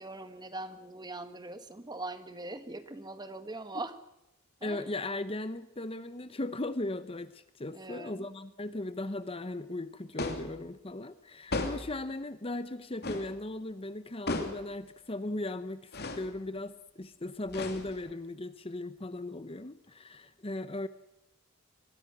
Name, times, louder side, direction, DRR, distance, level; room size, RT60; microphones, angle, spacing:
voice 1, 0.0-3.9 4.6-4.8 7.7-8.3, right 2 dB, 20° right, 10 dB, 1.4 m, -41 dB
voice 2, 4.6-20.9, left 2 dB, 25° left, 12 dB, 0.9 m, -37 dB
sound 1, 10.2-10.6 11.5-12.0 13.0-13.3 14.3-14.7 15.9-16.3 17.5-18.1, left 2 dB, 50° left, 2.7 m, -35 dB
24.0 x 20.0 x 6.1 m, 0.89 s
head